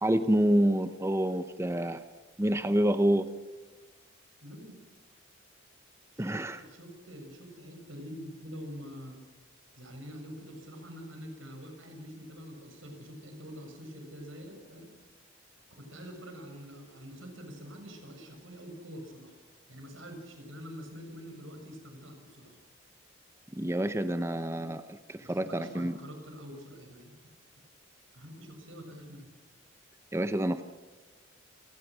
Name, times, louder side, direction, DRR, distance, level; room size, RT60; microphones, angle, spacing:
voice 1, 0.0-2.0 2.4-3.3 6.2-6.6 23.5-25.9 30.1-30.6, right 1 dB, 15° right, 10 dB, 0.8 m, -27 dB
voice 2, 4.4-4.8 6.1-9.2 9.8-14.9 15.8-19.3 19.7-22.6 25.2-27.1 28.1-29.3, equal, 85° right, 4 dB, 6.8 m, -45 dB
28.5 x 18.5 x 6.3 m, 1.3 s
head